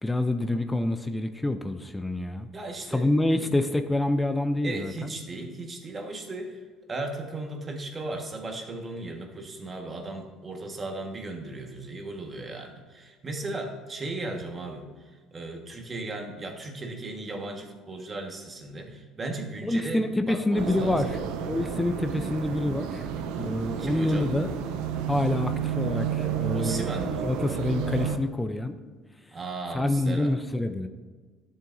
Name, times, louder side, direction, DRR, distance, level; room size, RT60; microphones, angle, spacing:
voice 1, 0.0-2.5 2.9-5.1 19.6-21.2 21.5-23.1 23.4-24.5 25.1-26.9 27.2-28.8 29.7-30.9, left 1 dB, 10° left, 8 dB, 0.5 m, -27 dB
voice 2, 2.5-3.5 4.6-6.6 6.9-21.2 23.8-24.3 26.5-27.3 29.3-30.4, right 2 dB, 30° right, 3 dB, 1.5 m, -36 dB
sound 1, 20.6-28.2, right 8 dB, 80° right, 0.7 m, -31 dB
12.5 x 7.6 x 2.6 m, 1.4 s
supercardioid pair, 100°, 0 cm